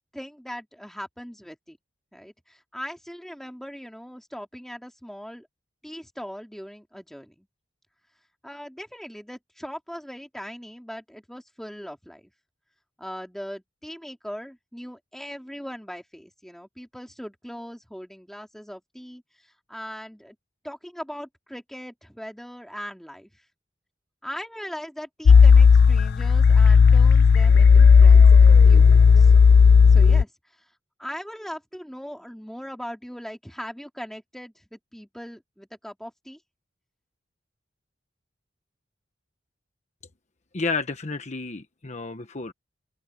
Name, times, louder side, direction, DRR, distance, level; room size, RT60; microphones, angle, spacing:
voice 1, 0.1-1.8 2.1-5.5 5.8-7.5 8.4-12.3 13.0-19.2 19.7-20.4 20.6-23.3 24.2-29.3 29.9-30.3 31.0-36.4, equal, ahead, 3.1 m, -39 dB
sound 1, 25.3-30.2, left 5 dB, 60° left, 0.4 m, -13 dB
voice 2, 40.5-42.5, left 4 dB, 40° left, 1.1 m, -31 dB
open air
head